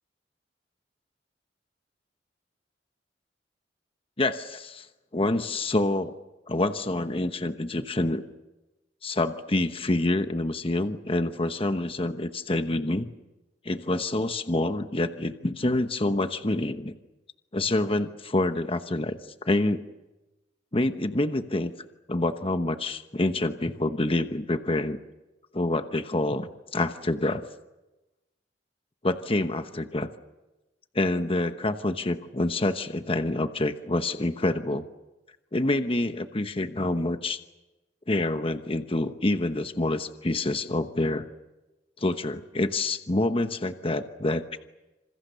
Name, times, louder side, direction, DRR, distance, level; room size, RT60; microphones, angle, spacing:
voice 1, 4.2-4.9 5.1-6.1 6.5-8.2 9.0-13.1 13.6-17.0 17.5-19.8 20.7-21.7 22.1-25.0 25.5-27.4 29.0-30.1 30.9-34.8 35.5-37.4 38.1-41.3 42.0-44.4, left 2 dB, 30° left, 9 dB, 1.0 m, -27 dB
27.5 x 27.5 x 6.9 m, 1.0 s
head